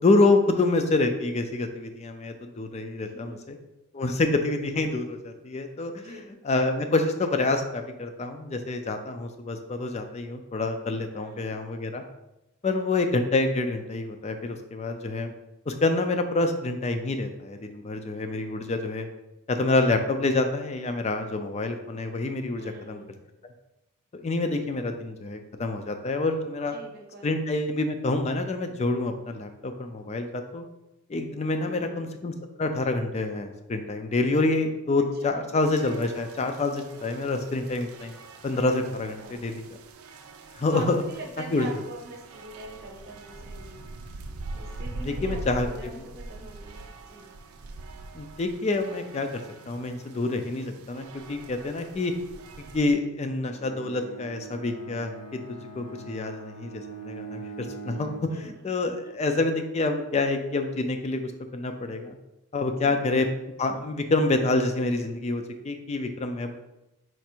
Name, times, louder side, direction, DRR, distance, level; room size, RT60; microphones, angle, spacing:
voice 1, 0.0-3.6 3.9-12.0 12.6-15.3 15.7-19.1 19.5-22.6 22.9-23.0 24.1-26.7 27.2-30.7 31.1-32.3 32.6-38.1 38.4-39.6 40.6-41.0 41.5-41.7 45.0-45.7 48.1-49.3 49.7-52.1 52.7-62.2 62.5-63.3 63.6-66.5, left 2 dB, 30° left, 7 dB, 0.4 m, -27 dB
voice 2, 3.0-3.4 5.9-6.4 11.1-11.6 22.6-23.2 26.7-27.4 31.5-32.2 35.2-35.6 39.2-39.5 40.7-43.9 44.5-47.3 58.3-59.1 62.8-63.1, right 2 dB, 45° right, 1 dB, 0.8 m, -44 dB
sound 1, 35.6-52.9, right 2 dB, 85° right, 0.4 m, -43 dB
Bowed string instrument, 53.5-58.4, right 4 dB, 90° left, 0.7 m, -42 dB
4.5 x 2.5 x 4.3 m, 0.94 s
head